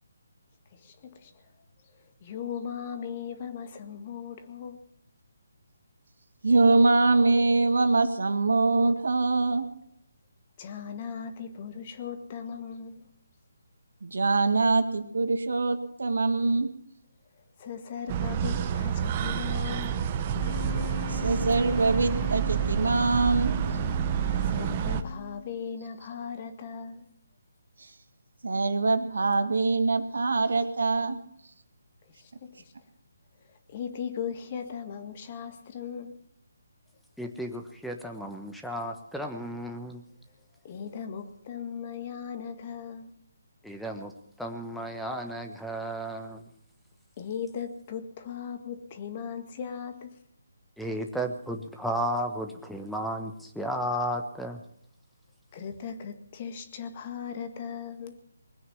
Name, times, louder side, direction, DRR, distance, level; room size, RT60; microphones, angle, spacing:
voice 1, 0.7-1.5 1.8-4.8 10.6-13.1 17.6-20.0 24.4-27.1 32.0-32.7 33.4-36.1 40.3-40.4 40.6-43.1 47.2-50.2 55.5-58.2, left 7 dB, 35° left, 8 dB, 1.9 m, -38 dB
voice 2, 6.4-9.6 14.0-16.7 21.1-23.5 28.4-31.2, right 3 dB, 75° right, 8 dB, 2.0 m, -23 dB
sound 1, 18.1-25.0, right 8 dB, 30° right, 1.2 m, -29 dB
sound 2, 20.3-25.7, left 7 dB, 55° left, 2.4 m, -41 dB
voice 3, 37.2-40.0 43.6-44.1 44.4-46.4 50.8-54.6, equal, ahead, 4 dB, 1.3 m, -33 dB
21.0 x 9.4 x 7.1 m, 0.71 s
figure-of-eight pair, 150°, 0 cm